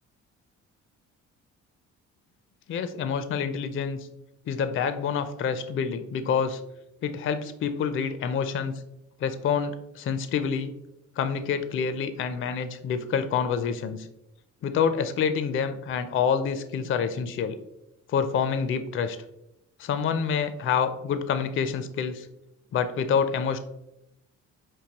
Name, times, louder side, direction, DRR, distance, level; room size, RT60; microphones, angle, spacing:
voice 1, 2.7-4.0 4.5-6.6 7.0-8.7 9.2-10.7 11.2-14.1 14.6-17.6 18.1-19.2 19.8-22.3 22.7-23.6, left 6 dB, 45° left, 10 dB, 0.4 m, -27 dB
5.2 x 2.7 x 2.9 m, 0.85 s
cardioid pair, 90°, 30 cm